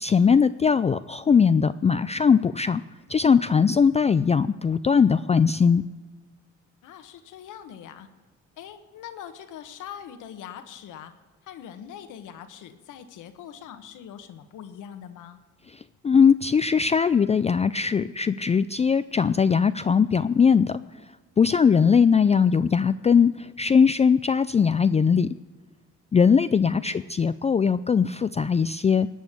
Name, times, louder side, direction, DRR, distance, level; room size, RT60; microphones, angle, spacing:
voice 1, 0.0-2.8 3.1-5.8 16.0-20.8 21.4-25.4 26.1-29.1, left 6 dB, 20° left, 13 dB, 0.3 m, -20 dB
voice 2, 6.8-8.1 8.6-11.1 11.4-15.4 21.7-22.2 26.6-27.2, left 9 dB, 85° left, 8 dB, 1.3 m, -42 dB
18.5 x 6.4 x 8.4 m, 1.4 s
cardioid pair, 90°, 30 cm